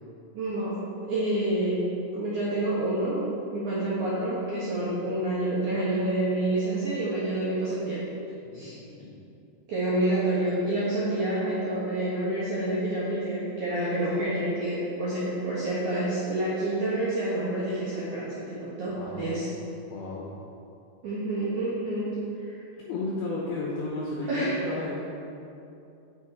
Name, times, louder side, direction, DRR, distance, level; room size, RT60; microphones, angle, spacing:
voice 1, 0.3-0.8 1.1-3.2 3.5-8.1 8.5-8.7 9.7-19.5 21.0-22.6 24.3-24.6, right 1 dB, 65° right, -10 dB, 2.0 m, -28 dB
voice 2, 8.5-9.1 19.0-19.5 19.9-20.3 22.8-25.1, left 2 dB, 80° left, -5 dB, 2.3 m, -34 dB
8.8 x 6.6 x 4.4 m, 2.7 s
omnidirectional pair, 5.6 m